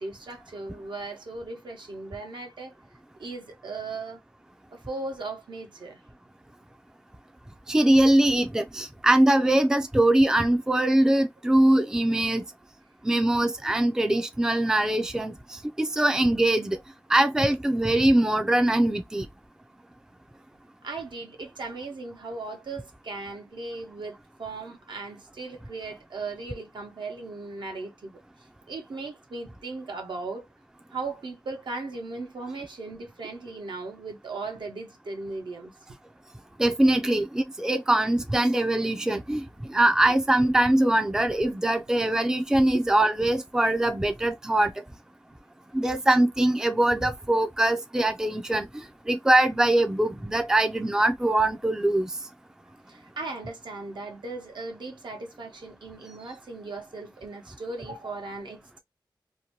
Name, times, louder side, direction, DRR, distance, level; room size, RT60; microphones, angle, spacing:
voice 1, 0.0-2.7 3.2-4.2 4.7-6.0 20.8-28.2 28.7-30.5 30.9-35.7 42.7-42.8 52.9-58.8, right 3 dB, 65° right, 0.9 m, -37 dB
voice 2, 7.7-12.4 13.0-15.3 15.8-16.8 17.1-19.3 36.6-39.4 39.7-44.7 45.7-48.7 49.1-52.1, right 1 dB, 5° right, 0.4 m, -22 dB
2.7 x 2.1 x 2.9 m
wide cardioid pair, 85°, 9 cm